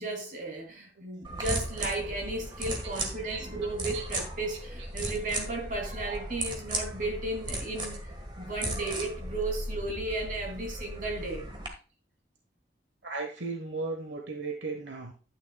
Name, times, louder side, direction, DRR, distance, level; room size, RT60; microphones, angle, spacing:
voice 1, 0.0-8.0 8.4-11.5, right 2 dB, 45° right, 2.9 m, -34 dB
sound 1, 1.2-11.7, right 1 dB, 25° right, 1.6 m, -36 dB
voice 2, 3.0-3.4 3.9-4.0 13.0-15.1, right 3 dB, 80° right, 1.3 m, -36 dB
11.5 x 9.3 x 2.3 m
head